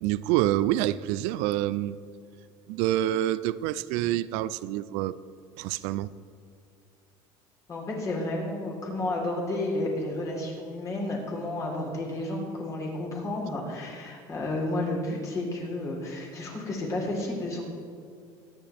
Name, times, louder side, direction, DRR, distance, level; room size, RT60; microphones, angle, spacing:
voice 1, 0.0-2.0 2.7-5.2 5.6-6.1, right 14 dB, 75° right, 16 dB, 0.4 m, -27 dB
voice 2, 7.7-17.6, left 2 dB, 30° left, -2 dB, 3.8 m, -31 dB
23.5 x 10.5 x 3.5 m, 2.3 s
cardioid pair, 155°, 11 cm